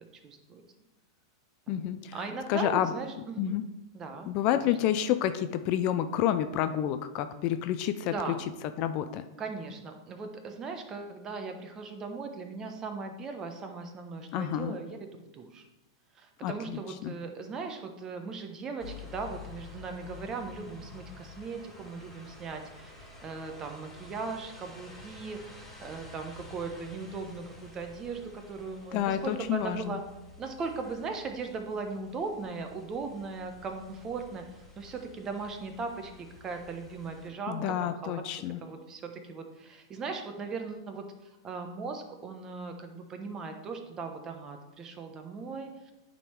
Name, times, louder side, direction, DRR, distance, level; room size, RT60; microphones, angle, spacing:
voice 1, 0.2-0.6 1.7-3.6 3.9-4.6 8.0-8.4 9.4-15.0 15.3-15.6 16.1-30.0 30.4-36.1 36.4-41.0 41.4-45.9, right 4 dB, 30° right, 5 dB, 1.1 m, -38 dB
voice 2, 1.7-2.2 2.5-2.9 3.4-3.6 4.3-8.4 8.8-9.2 14.3-14.8 16.4-17.1 28.9-30.0 37.5-38.6, left 11 dB, 45° left, 10 dB, 0.4 m, -29 dB
sound 1, 18.8-37.3, left 3 dB, 5° left, 2.6 m, -50 dB
9.8 x 3.8 x 4.5 m, 0.99 s
hypercardioid pair, 100°, 2 cm